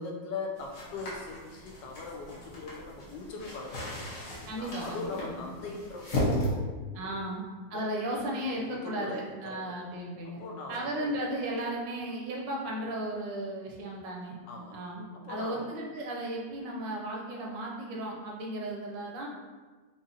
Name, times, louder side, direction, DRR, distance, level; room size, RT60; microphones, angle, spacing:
voice 1, 0.0-4.1 4.5-7.2 7.7-7.8 8.5-9.6 10.2-11.2 14.4-14.8 15.2-15.7, left 3 dB, 85° left, 0 dB, 1.3 m, -40 dB
sound 1, 0.6-6.5, equal, 55° left, 1.3 m, -36 dB
voice 2, 4.5-5.5 6.9-10.4 10.7-14.3 14.7-19.3, right 1 dB, 85° right, -2 dB, 1.4 m, -35 dB
5.1 x 2.5 x 2.7 m, 1.3 s
omnidirectional pair, 1.9 m